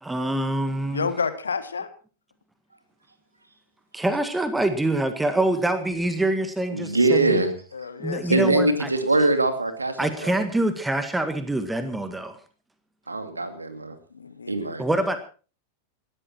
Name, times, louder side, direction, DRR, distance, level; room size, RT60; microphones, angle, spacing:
voice 1, 0.0-1.1 3.9-7.4 8.0-8.9 10.0-12.4 14.8-15.2, right 1 dB, 5° right, 9 dB, 1.8 m, -25 dB
voice 2, 0.9-1.9 7.7-8.5 14.1-14.8, left 5 dB, 75° left, 12 dB, 1.6 m, -30 dB
voice 3, 6.7-7.5 8.3-10.3 13.1-13.9 14.5-14.8, right 2 dB, 80° right, 9 dB, 2.4 m, -22 dB
19.5 x 13.5 x 4.5 m, 0.38 s
figure-of-eight pair, 90°, 0 cm